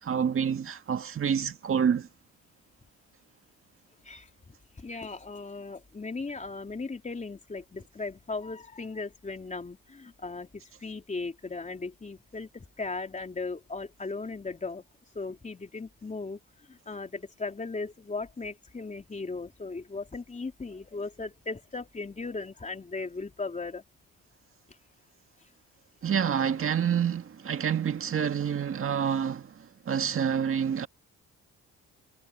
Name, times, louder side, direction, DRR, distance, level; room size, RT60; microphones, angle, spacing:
voice 1, 0.0-2.1 26.0-30.9, right 8 dB, 45° right, 1.9 m, -28 dB
voice 2, 4.8-14.8 15.1-16.4 16.7-23.8, left 3 dB, 25° left, 3.4 m, -37 dB
cardioid pair, 90°, 30 cm